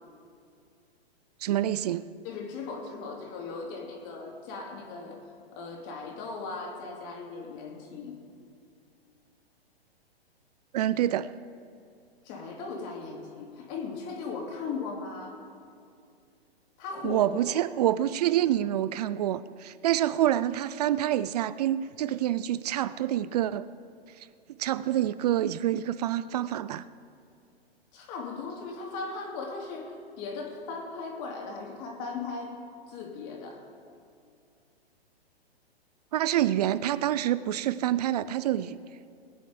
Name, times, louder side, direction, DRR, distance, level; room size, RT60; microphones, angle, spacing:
voice 1, 1.4-2.1 10.7-11.3 17.0-23.7 24.6-26.8 36.1-38.8, right 12 dB, 40° right, 17 dB, 0.4 m, -27 dB
voice 2, 2.2-5.2 5.5-8.1 12.2-15.4 16.8-17.2 17.5-17.6 27.9-32.5 32.9-33.6, left 4 dB, 35° left, 0 dB, 3.0 m, -38 dB
20.5 x 9.1 x 5.2 m, 2.4 s
hypercardioid pair, 125°, 32 cm